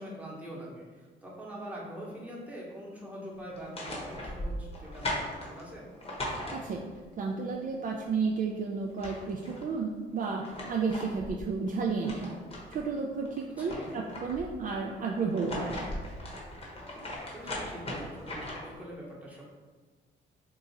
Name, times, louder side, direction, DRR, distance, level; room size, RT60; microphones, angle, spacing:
voice 1, 0.0-5.9 13.6-13.9 17.3-19.4, equal, 5° right, -5 dB, 1.0 m, -43 dB
sound 1, 3.5-7.1 8.5-8.6 8.8-9.7 10.2-12.9 13.3-14.6 15.2-18.8, left 1 dB, 30° left, 0.9 m, -39 dB
voice 2, 7.2-12.3 12.7-15.9, right 4 dB, 45° right, -1 dB, 0.4 m, -32 dB
2.7 x 2.5 x 4.0 m, 1.4 s
cardioid pair, 90°, 20 cm